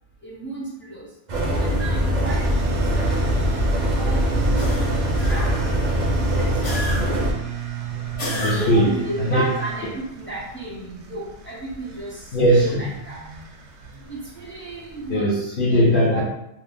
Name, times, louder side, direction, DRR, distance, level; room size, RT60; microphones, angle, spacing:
voice 1, 0.2-1.1 1.6-3.1 4.0-5.0 5.3-5.5 6.0-7.0 8.6-9.9 10.1-12.2 12.6-13.2 14.1-15.3 15.7-16.2, right 2 dB, 15° left, -6 dB, 0.5 m, -33 dB
sound 1, 1.3-7.3, equal, 50° right, 0.5 m, -22 dB
sound 2, 2.2-15.1, right 10 dB, 75° right, 0.8 m, -34 dB
sound 3, 4.6-5.8 6.6-7.4 8.2-9.0, left 1 dB, 85° left, 1.1 m, -30 dB
voice 2, 7.9-9.4 12.3-12.9 15.1-16.2, equal, 60° left, -5 dB, 0.7 m, -20 dB
2.6 x 2.0 x 3.4 m, 0.81 s
omnidirectional pair, 1.2 m